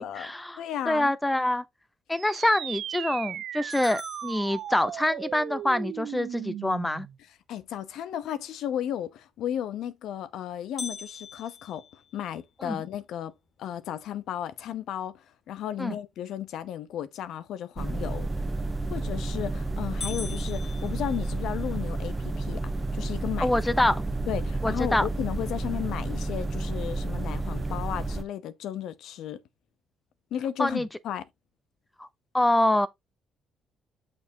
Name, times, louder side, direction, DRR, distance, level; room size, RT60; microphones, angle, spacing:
voice 1, 0.0-1.6 2.1-7.1 12.6-12.8 15.8-16.0 23.4-24.0 24.6-25.1 30.6-30.9 32.0-32.1 32.3-32.9, left 1 dB, 10° left, 0.6 m, -26 dB
voice 2, 0.6-1.1 7.5-13.3 13.6-18.3 18.9-23.5 24.3-29.4 30.3-31.2, left 10 dB, 80° left, 0.8 m, -34 dB
sound 1, 2.1-7.2, right 11 dB, 75° right, 0.4 m, -37 dB
sound 2, 3.7-5.3 10.8-12.9 13.4-13.5 14.0-14.1 14.8-15.1 18.7-19.1 19.5-19.6 20.0-21.7, left 4 dB, 40° left, 2.0 m, -42 dB
sound 3, 17.8-28.2, right 2 dB, 20° right, 1.0 m, -31 dB
6.6 x 6.1 x 2.7 m
cardioid pair, 90°, 0 cm